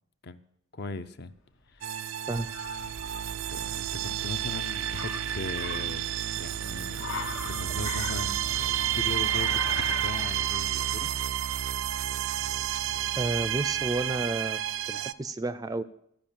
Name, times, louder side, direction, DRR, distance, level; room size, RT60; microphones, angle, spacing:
voice 1, 0.7-1.3 1.7-2.0 3.5-7.0 7.4-11.1, left 3 dB, 55° left, 0.6 m, -39 dB
Car, 1.3-14.2, left 4 dB, 85° left, 1.5 m, -43 dB
sound 1, 1.8-15.1, right 11 dB, 90° right, 0.4 m, -30 dB
voice 2, 13.2-14.6 14.9-15.8, right 2 dB, 20° right, 0.3 m, -31 dB
14.0 x 5.3 x 8.9 m
head